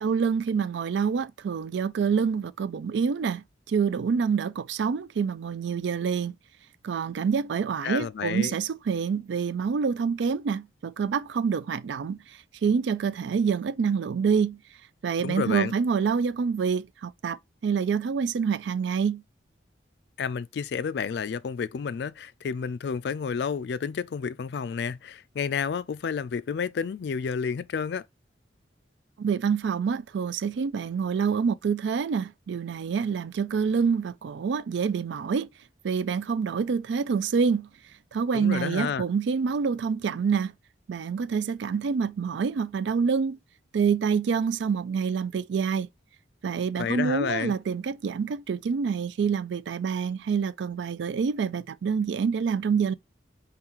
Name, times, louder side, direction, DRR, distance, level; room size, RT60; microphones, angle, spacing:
voice 1, 0.0-6.3 6.8-12.2 12.6-14.6 15.0-17.4 17.6-19.2 29.2-35.5 35.8-37.7 38.1-40.5 40.9-43.4 43.7-45.9 46.4-52.9, right 6 dB, 75° right, 0.4 m, -27 dB
voice 2, 7.8-8.5 15.2-15.7 20.2-28.0 38.3-39.0 46.8-47.5, left 6 dB, 60° left, 0.3 m, -30 dB
5.7 x 2.4 x 3.0 m
head